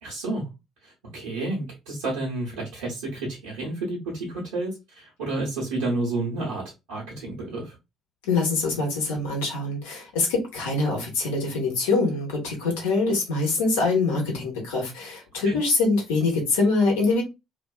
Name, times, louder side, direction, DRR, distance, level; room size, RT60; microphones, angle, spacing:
voice 1, 0.0-0.5 0.8-6.6 6.9-7.7 15.4-15.6, right 2 dB, 75° right, 0.8 m, -30 dB
voice 2, 8.2-17.2, left 3 dB, 75° left, 0.9 m, -24 dB
2.5 x 2.2 x 2.2 m
figure-of-eight pair, 50°, 0 cm